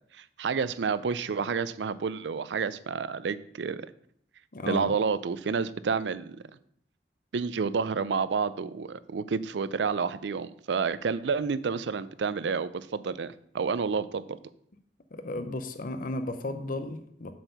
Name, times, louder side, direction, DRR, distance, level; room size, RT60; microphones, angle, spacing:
voice 1, 0.2-3.9 4.7-6.4 7.3-14.2, right 5 dB, 80° right, 16 dB, 0.4 m, -29 dB
voice 2, 4.5-4.9 15.1-17.3, left 2 dB, 50° left, 8 dB, 0.7 m, -34 dB
7.6 x 4.6 x 6.7 m, 0.67 s
head